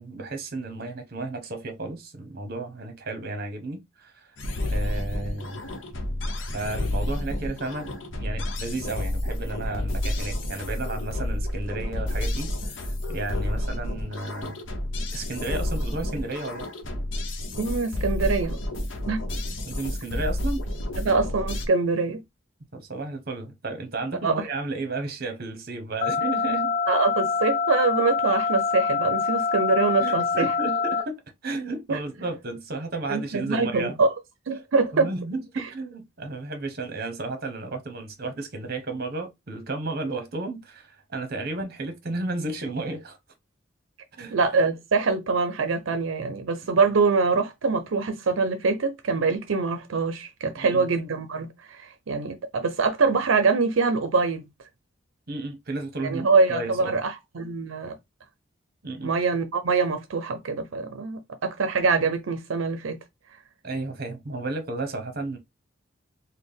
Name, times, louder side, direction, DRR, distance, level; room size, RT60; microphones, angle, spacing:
voice 1, 0.0-4.3 4.7-5.7 6.5-14.6 15.1-16.7 19.6-20.7 22.7-26.7 30.0-34.0 34.9-43.2 44.2-44.4 50.6-50.9 55.3-57.0 58.8-59.1 63.6-65.4, right 2 dB, 50° right, 0.9 m, -33 dB
sound 1, 4.4-21.7, left 1 dB, 70° left, 0.8 m, -30 dB
voice 2, 17.6-18.6 19.1-19.2 21.0-22.2 24.2-24.5 26.9-30.5 31.9-32.0 33.1-34.1 34.5-35.1 35.6-35.7 44.3-54.4 56.0-58.0 59.0-63.0, right 4 dB, 85° right, 0.5 m, -24 dB
sound 2, 26.0-31.0, left 5 dB, 50° left, 0.5 m, -25 dB
4.1 x 2.2 x 3.4 m
head